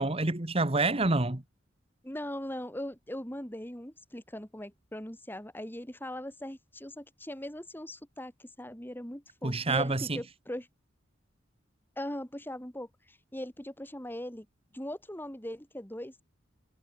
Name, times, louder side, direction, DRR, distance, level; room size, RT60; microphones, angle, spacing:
voice 1, 0.0-1.4 9.4-10.1, right 2 dB, 30° right, 1.5 m, -27 dB
voice 2, 2.0-10.7 12.0-14.5 14.7-16.2, left 1 dB, 10° left, 2.5 m, -40 dB
head